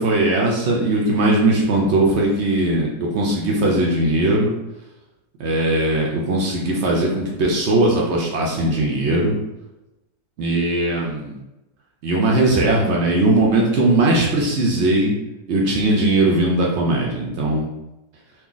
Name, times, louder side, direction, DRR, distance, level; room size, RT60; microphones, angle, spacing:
voice 1, 0.0-4.5 5.4-9.4 10.4-11.4 12.0-15.1 15.5-17.7, right 2 dB, 75° right, -2 dB, 0.6 m, -19 dB
2.7 x 2.5 x 3.8 m, 0.97 s
omnidirectional pair, 1.9 m